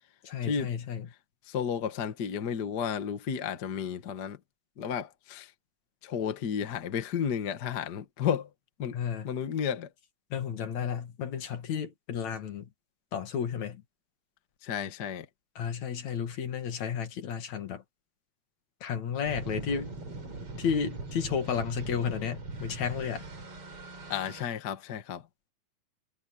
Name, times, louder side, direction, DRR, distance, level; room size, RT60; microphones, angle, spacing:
voice 1, 0.2-1.1 8.9-9.3 10.3-12.7 13.1-13.8 15.6-17.8 18.8-19.9 20.6-23.2, left 7 dB, 65° left, 3.1 m, -32 dB
voice 2, 1.5-4.4 4.8-5.5 6.0-8.5 8.8-9.0 9.2-9.9 14.6-15.3 24.1-25.3, left 8 dB, 45° left, 1.4 m, -32 dB
sound 1, 19.2-24.5, right 2 dB, 45° right, 5.2 m, -40 dB
omnidirectional pair, 3.5 m